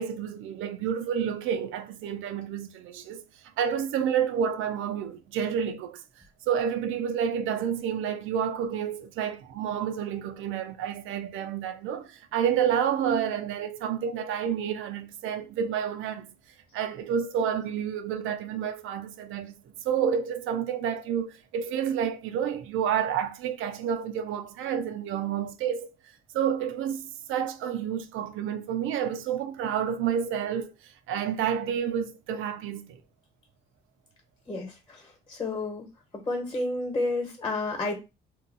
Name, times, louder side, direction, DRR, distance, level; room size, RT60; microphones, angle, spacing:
voice 1, 0.0-3.2 3.6-6.0 6.5-16.3 16.7-19.5 19.8-25.9 26.3-33.0, right 8 dB, 85° right, 0.5 m, -29 dB
voice 2, 34.5-35.0 35.3-35.8 36.3-38.0, left 2 dB, 25° left, 1.2 m, -30 dB
2.8 x 2.2 x 3.9 m
cardioid pair, 90°, 20 cm